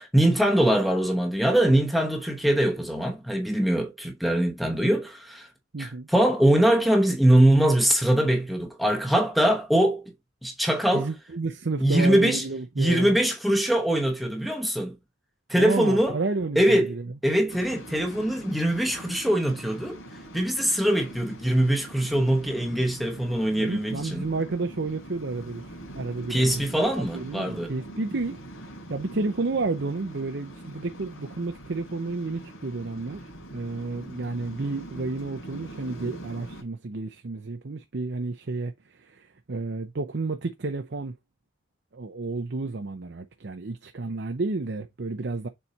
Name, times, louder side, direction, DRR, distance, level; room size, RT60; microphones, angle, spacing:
voice 1, 0.0-5.5 5.8-10.1 10.4-11.1 11.8-12.4 12.8-15.0 15.5-16.2 16.6-17.0 17.2-20.0 20.3-24.2 26.3-27.7, right 1 dB, ahead, 1.0 m, -22 dB
voice 2, 5.7-6.1 10.9-13.2 15.6-17.1 23.6-28.4 28.9-33.3 33.5-41.1 41.9-45.5, right 3 dB, 55° right, 0.6 m, -31 dB
Waves surf, 17.5-36.6, right 1 dB, 80° left, 3.6 m, -43 dB
7.1 x 4.2 x 3.2 m
head